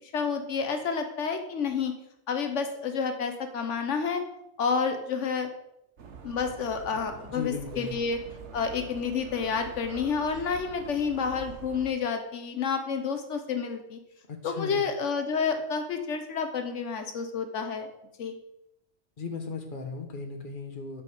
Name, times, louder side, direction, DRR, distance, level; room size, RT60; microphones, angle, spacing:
voice 1, 0.1-1.9 2.3-4.2 4.6-5.5 6.2-8.2 8.5-14.0 14.4-17.9 18.2-18.4, left 5 dB, 85° left, 6 dB, 1.3 m, -29 dB
sound 1, 6.0-11.9, right 5 dB, 70° right, 1.4 m, -45 dB
voice 2, 7.3-7.9 14.3-14.8 19.2-21.0, left 4 dB, 45° left, 4 dB, 1.5 m, -37 dB
12.0 x 5.5 x 4.9 m, 0.82 s
omnidirectional pair, 1.2 m